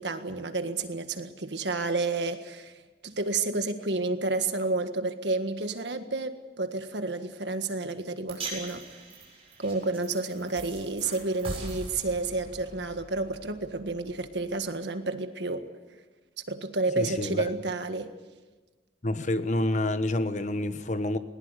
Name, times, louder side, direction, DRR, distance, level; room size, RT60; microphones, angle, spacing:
voice 1, 0.0-8.8 9.6-15.7 16.5-18.1, right 3 dB, 80° right, 1.7 m, -30 dB
sound 1, 8.3-14.7, right 2 dB, 35° right, 7.4 m, -42 dB
voice 2, 17.0-17.4 19.0-21.2, left 1 dB, 45° left, 1.1 m, -28 dB
20.5 x 19.5 x 8.2 m
head